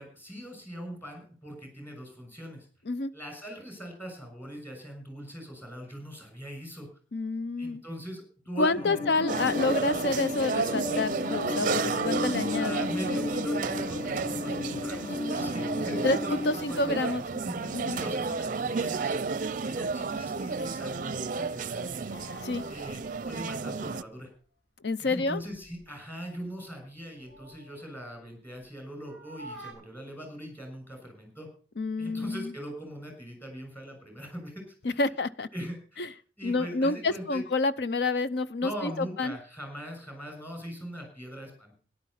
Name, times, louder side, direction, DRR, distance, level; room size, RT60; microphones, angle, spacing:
voice 1, 0.0-2.7 3.1-6.9 7.6-9.0 12.6-19.2 19.6-21.9 22.7-24.3 25.0-31.5 32.0-35.0 35.5-37.4 38.6-41.8, equal, 10° left, 6.6 m, -41 dB
voice 2, 7.1-7.8 8.6-12.8 16.0-17.2 17.7-18.0 22.4-22.6 24.8-25.4 31.8-32.5 34.8-35.5 36.0-36.1 36.4-39.4, left 3 dB, 65° left, 0.7 m, -28 dB
sound 1, 8.8-17.0, left 3 dB, 30° left, 1.0 m, -34 dB
sound 2, 9.3-24.0, right 4 dB, 45° right, 0.5 m, -32 dB
Keys jangling, 18.2-18.3 18.8-21.0 21.9-24.0 24.3-24.4 25.3-25.9 26.2-28.7 29.0-29.7, right 1 dB, 85° left, 6.5 m, -50 dB
13.5 x 11.0 x 5.7 m
head